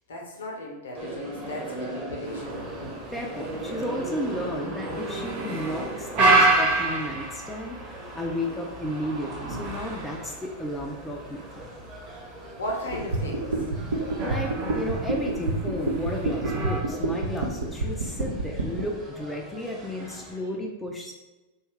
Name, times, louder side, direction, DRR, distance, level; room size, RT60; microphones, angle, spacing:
voice 1, 0.1-2.7 12.4-13.6 20.0-20.5, left 1 dB, 65° left, 0 dB, 0.6 m, -36 dB
sound 1, 0.9-20.4, right 1 dB, 15° right, 0.8 m, -40 dB
sound 2, 2.2-16.8, right 2 dB, 45° right, 0.8 m, -29 dB
voice 2, 3.1-7.8 8.1-11.7 14.2-21.1, left 1 dB, 10° left, 0 dB, 0.4 m, -33 dB
sound 3, 12.9-18.8, right 3 dB, 70° right, 0.4 m, -27 dB
2.7 x 2.3 x 3.1 m, 1.1 s
figure-of-eight pair, 90°, 0 cm